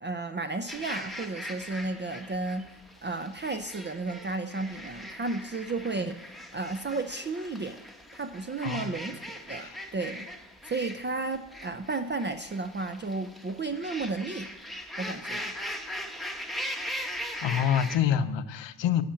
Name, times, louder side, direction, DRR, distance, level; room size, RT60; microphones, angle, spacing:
voice 1, 0.0-7.9 8.1-10.3 10.6-14.5 15.0-15.5, right 3 dB, 25° right, 8 dB, 0.5 m, -33 dB
sound 1, 0.7-18.0, equal, ahead, 1.0 m, -40 dB
voice 2, 8.6-8.9 9.6-9.8 17.4-19.0, left 9 dB, 75° left, 12 dB, 0.8 m, -27 dB
11.5 x 5.7 x 7.7 m, 0.94 s
cardioid pair, 120°, 45 cm